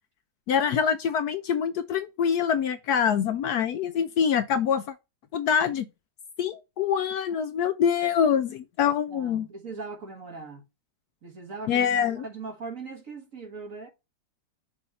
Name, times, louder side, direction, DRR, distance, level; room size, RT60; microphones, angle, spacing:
voice 1, 0.5-4.8 5.3-5.9 6.4-9.5 11.7-12.2, left 8 dB, 70° left, 1.0 m, -25 dB
voice 2, 9.1-10.6 11.2-13.9, right 4 dB, 50° right, 1.7 m, -40 dB
6.2 x 3.0 x 5.2 m
omnidirectional pair, 2.0 m